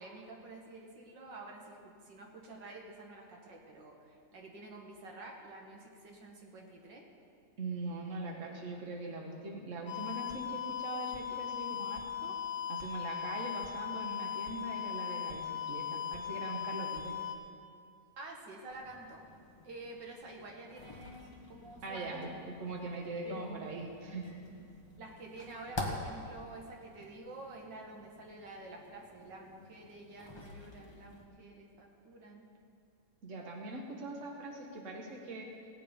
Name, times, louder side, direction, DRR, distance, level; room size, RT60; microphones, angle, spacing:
voice 1, 0.0-7.0 18.2-19.2 19.6-22.2 23.2-23.9 25.0-32.4, right 2 dB, 70° right, 0 dB, 2.2 m, -49 dB
voice 2, 7.6-12.4 12.7-17.1 21.8-24.3 33.2-35.5, right 2 dB, 40° right, 1 dB, 1.7 m, -41 dB
sound 1, 9.9-17.4, left 8 dB, 65° left, 2.1 m, -38 dB
sound 2, 18.7-31.3, left 2 dB, 15° left, 1.2 m, -48 dB
17.0 x 8.8 x 5.2 m, 2.4 s
omnidirectional pair, 2.1 m